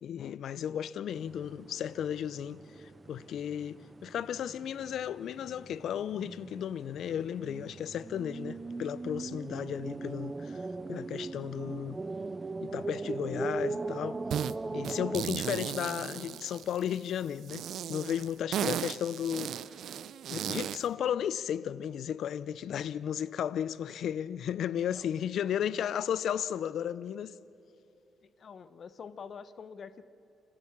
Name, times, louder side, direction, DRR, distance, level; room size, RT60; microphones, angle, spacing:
voice 1, 0.0-10.6 10.9-12.0 12.6-14.2 14.7-19.5 20.3-27.3, left 9 dB, 70° left, 0.5 m, -34 dB
sound 1, 1.1-15.2, right 3 dB, 25° right, 0.5 m, -40 dB
sound 2, 14.3-14.5 14.8-17.0 17.5-20.9, right 10 dB, 70° right, 0.5 m, -35 dB
voice 2, 25.5-25.9 28.2-30.0, left 6 dB, 50° left, 1.0 m, -47 dB
29.5 x 15.0 x 7.3 m
cardioid pair, 90°, 0 cm